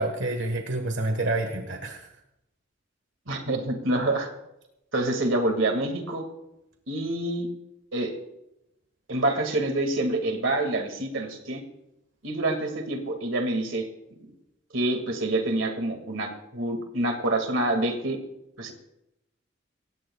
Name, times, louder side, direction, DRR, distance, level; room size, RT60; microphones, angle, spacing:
voice 1, 0.0-2.1, right 2 dB, 70° right, 4 dB, 1.5 m, -28 dB
voice 2, 3.3-4.3 4.9-6.2 6.9-7.5 7.9-8.1 9.1-11.6 12.2-13.9 14.7-18.2 18.6-18.7, right 2 dB, 90° right, 4 dB, 2.1 m, -27 dB
26.5 x 15.0 x 2.3 m, 0.89 s
head